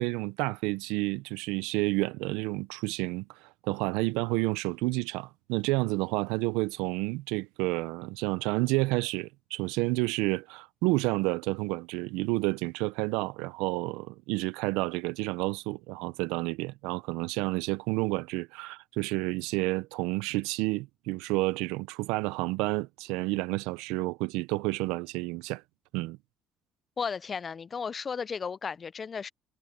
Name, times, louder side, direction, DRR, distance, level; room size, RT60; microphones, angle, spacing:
voice 1, 0.0-25.6 25.9-26.2, right 22 dB, 90° right, 0.5 m, -30 dB
voice 2, 27.0-29.3, left 6 dB, 35° left, 0.5 m, -34 dB
supercardioid pair, 85°, 0 cm